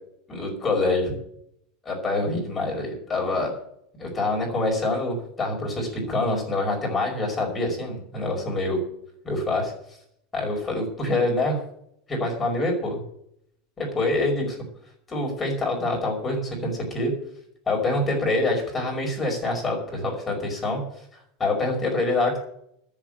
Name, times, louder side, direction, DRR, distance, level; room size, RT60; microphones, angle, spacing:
voice 1, 0.3-1.1 1.9-3.5 4.0-8.8 9.2-9.7 10.3-11.6 12.1-13.0 13.8-14.6 15.1-17.1 17.7-20.8 21.4-22.4, left 2 dB, 10° left, -1 dB, 5.3 m, -25 dB
13.5 x 7.4 x 8.8 m, 0.70 s
supercardioid pair, 170°, 0 cm